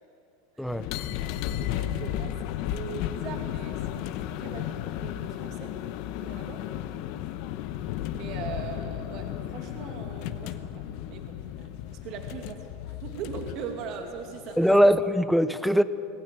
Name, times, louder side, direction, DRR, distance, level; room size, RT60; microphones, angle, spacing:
voice 1, 0.6-1.2 14.6-15.8, equal, ahead, 12 dB, 0.7 m, -22 dB
sound 1, 0.7-15.1, left 12 dB, 55° left, 1.0 m, -34 dB
voice 2, 1.5-2.3 2.7-4.8 5.0-5.7 6.2-6.6 8.1-9.2 9.5-11.3 11.9-12.6 13.0-14.6, right 6 dB, 45° right, 4 dB, 2.3 m, -40 dB
20.0 x 16.0 x 9.4 m, 2.8 s
supercardioid pair, 145°, 0 cm